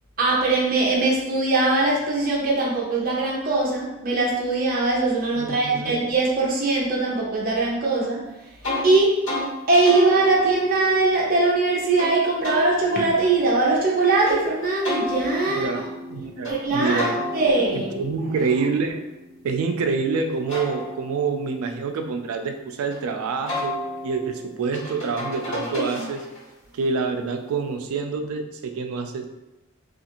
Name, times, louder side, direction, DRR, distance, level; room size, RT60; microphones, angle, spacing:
voice 1, 0.2-8.6 8.8-9.2 9.7-15.8 16.5-17.9, right 3 dB, 40° right, -3 dB, 0.6 m, -21 dB
voice 2, 5.4-6.0 15.5-15.8 16.1-17.1 17.7-19.0 19.4-23.7 24.0-26.2 26.7-29.3, right 4 dB, 85° right, 6 dB, 0.3 m, -27 dB
sound 1, 8.6-8.9 9.2-9.5 9.8-12.1 12.4-14.4 14.8-16.6 17.0-19.9 20.3-23.0 23.5-26.5, left 1 dB, 60° left, 1.2 m, -33 dB
2.4 x 2.4 x 2.9 m, 0.97 s
head